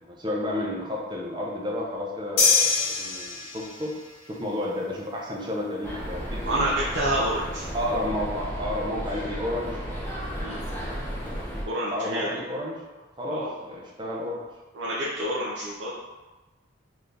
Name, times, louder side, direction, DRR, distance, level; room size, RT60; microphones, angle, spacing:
voice 1, 0.0-3.9 4.2-6.6 7.2-7.3 7.7-9.8 11.9-12.8 13.2-14.4, left 1 dB, 25° right, -3 dB, 0.6 m, -31 dB
sound 1, 2.4-3.9, left 4 dB, 50° left, 0.7 m, -23 dB
sound 2, 5.8-11.6, equal, 10° left, 0.8 m, -33 dB
voice 2, 6.4-7.6 10.4-10.7 11.7-12.4 13.2-13.5 14.8-15.9, right 1 dB, 65° right, -6 dB, 0.6 m, -28 dB
4.0 x 2.7 x 3.3 m, 1.2 s
head